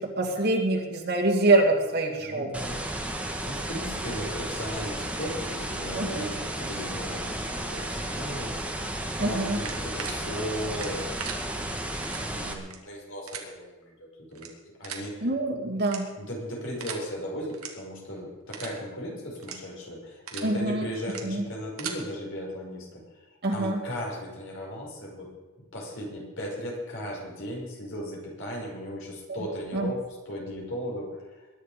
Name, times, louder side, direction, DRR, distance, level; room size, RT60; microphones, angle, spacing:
voice 1, 0.0-2.5 5.9-6.2 9.2-9.6 15.2-16.1 20.4-20.9 21.2-21.4 23.4-23.8 29.7-29.9, right 2 dB, 50° right, 0 dB, 2.5 m, -25 dB
voice 2, 2.2-8.7 9.2-11.0 11.6-14.5 14.8-15.3 16.2-25.3 25.7-31.5, equal, 65° left, -2 dB, 5.9 m, -37 dB
sound 1, 2.5-12.5, right 1 dB, 5° right, 1.6 m, -33 dB
sound 2, 9.5-10.1 10.7-11.4 12.0-12.2 12.6-12.8 13.3-13.4 14.3-14.5 14.8-15.0 15.8-16.3 16.8-17.0 17.5-17.7 18.0-18.2 18.5-18.7 19.3-19.6 20.0-20.5 21.0-21.2 21.6-22.0, right 8 dB, 85° right, 2.3 m, -37 dB
21.5 x 11.0 x 5.2 m, 1.2 s
head